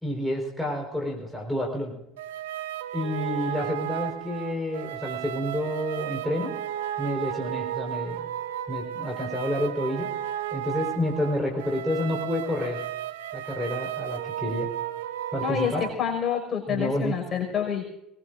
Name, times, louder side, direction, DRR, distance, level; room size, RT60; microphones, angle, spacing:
voice 1, 0.0-1.9 2.9-6.5 7.0-8.3 8.7-10.1 10.5-12.8 13.3-14.7 15.3-15.9 16.7-17.2, left 1 dB, 5° left, -2 dB, 4.6 m, -29 dB
sound 1, 2.2-15.9, right 12 dB, 70° right, 0.8 m, -34 dB
voice 2, 15.4-15.7 16.0-17.8, left 8 dB, 35° left, 1 dB, 5.6 m, -27 dB
23.0 x 20.0 x 2.6 m, 0.82 s
figure-of-eight pair, 65°, 0 cm